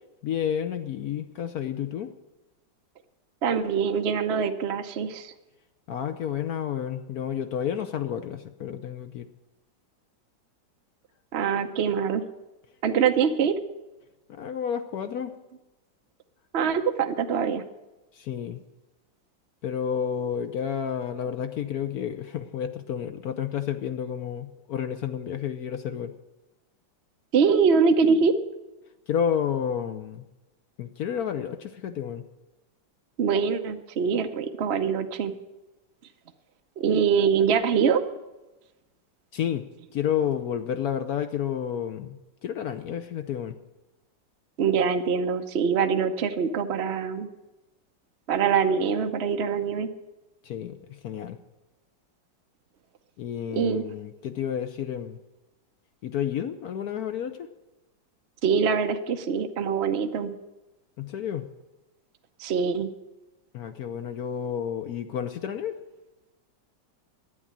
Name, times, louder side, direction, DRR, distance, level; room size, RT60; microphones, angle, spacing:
voice 1, 0.2-2.1 5.9-9.3 14.3-15.3 18.1-18.6 19.6-26.1 29.1-30.2 30.8-32.2 39.3-39.7 39.9-43.5 50.4-50.7 51.0-51.4 53.2-55.2 56.0-57.5 61.0-61.5 63.5-65.8, left 8 dB, 65° left, 9 dB, 1.0 m, -30 dB
voice 2, 3.4-5.3 11.3-12.2 12.8-13.5 16.5-17.6 27.3-28.3 33.2-35.3 36.8-38.0 44.6-47.3 48.3-49.9 53.5-53.9 58.4-60.3 62.4-62.9, right 6 dB, 60° right, 6 dB, 0.7 m, -24 dB
11.0 x 9.1 x 8.7 m, 1.0 s
omnidirectional pair, 2.0 m